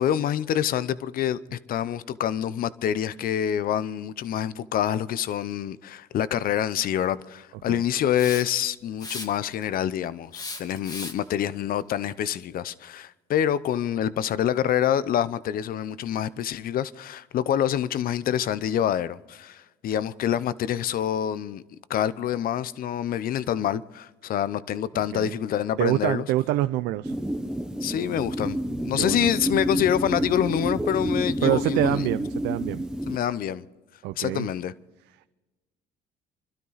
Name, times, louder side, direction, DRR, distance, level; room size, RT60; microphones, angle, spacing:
voice 1, 0.0-21.6 21.9-26.2 27.8-32.1 33.1-33.6 34.2-34.7, left 10 dB, 60° left, 0.7 m, -26 dB
Hiss, 8.1-8.6 9.0-9.6 10.3-11.3, left 2 dB, 25° left, 1.6 m, -36 dB
voice 2, 25.8-27.2 29.0-29.3 31.4-32.8 34.0-34.5, right 15 dB, 90° right, 0.5 m, -26 dB
sound 1, 27.0-33.2, equal, 5° right, 0.9 m, -29 dB
26.5 x 12.5 x 4.0 m
cardioid pair, 110°, 17 cm